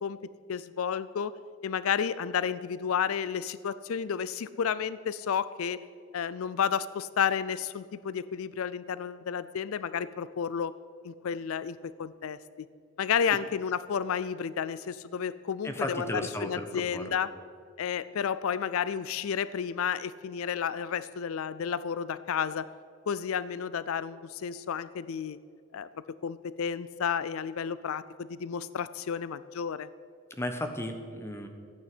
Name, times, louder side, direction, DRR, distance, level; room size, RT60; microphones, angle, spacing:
voice 1, 0.5-1.3 1.6-5.8 6.1-10.7 11.0-12.4 13.0-17.3 17.8-22.7 23.1-25.4 25.7-25.9 26.2-29.9, left 7 dB, 75° left, 16 dB, 0.4 m, -31 dB
voice 2, 15.6-17.2 30.3-31.5, left 1 dB, 10° left, 5 dB, 1.0 m, -35 dB
14.0 x 9.2 x 7.7 m, 2.4 s
head